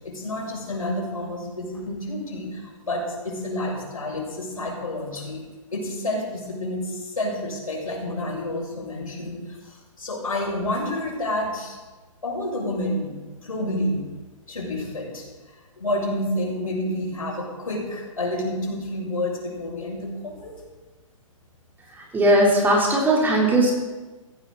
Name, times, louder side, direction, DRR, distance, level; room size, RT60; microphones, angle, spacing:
voice 1, 0.0-5.4 5.7-11.8 12.2-14.0 14.5-15.2 15.8-20.5, left 1 dB, 75° left, -2 dB, 6.7 m, -29 dB
voice 2, 21.9-23.7, right 1 dB, 10° right, -3 dB, 3.9 m, -19 dB
18.0 x 15.5 x 4.1 m, 1.3 s
figure-of-eight pair, 120°, 18 cm